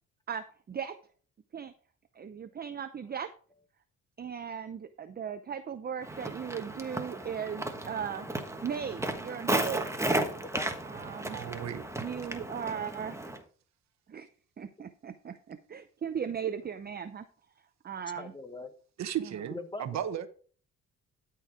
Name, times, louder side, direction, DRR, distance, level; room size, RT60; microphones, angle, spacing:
voice 1, 0.3-0.9 1.5-1.7 2.2-3.3 4.2-8.3 8.6-9.9 10.9-11.4 12.0-13.3 14.1-14.3 14.6-17.2 17.8-18.3, right 7 dB, 30° right, 0.6 m, -37 dB
Walk footsteps, 6.0-13.4, right 1 dB, 10° right, 1.4 m, -34 dB
voice 2, 10.4-10.7 18.1-18.7 19.5-20.0, left 2 dB, 15° left, 1.1 m, -41 dB
voice 3, 11.3-11.8 19.0-20.3, right 10 dB, 65° right, 1.0 m, -35 dB
12.5 x 4.7 x 4.8 m
cardioid pair, 90°, 30 cm